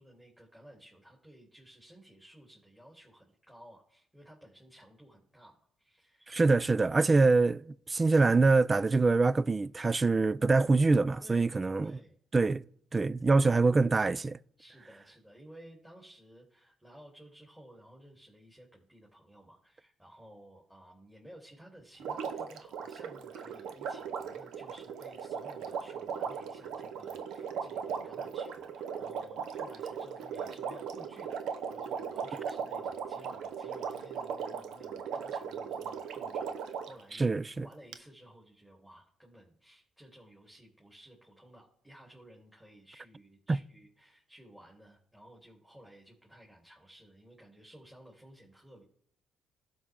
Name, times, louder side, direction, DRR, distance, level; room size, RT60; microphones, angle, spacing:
voice 1, 0.0-6.4 11.2-12.2 14.6-37.3 37.6-48.8, right 1 dB, 10° right, 3.1 m, -55 dB
voice 2, 6.3-11.9 12.3-12.6 12.9-14.4 37.2-37.7 43.5-43.6, right 3 dB, 30° right, 0.4 m, -25 dB
Water, 22.0-37.0 37.9-38.0, right 6 dB, 70° right, 0.8 m, -38 dB
17.0 x 5.7 x 3.7 m
hypercardioid pair, 50°, 0 cm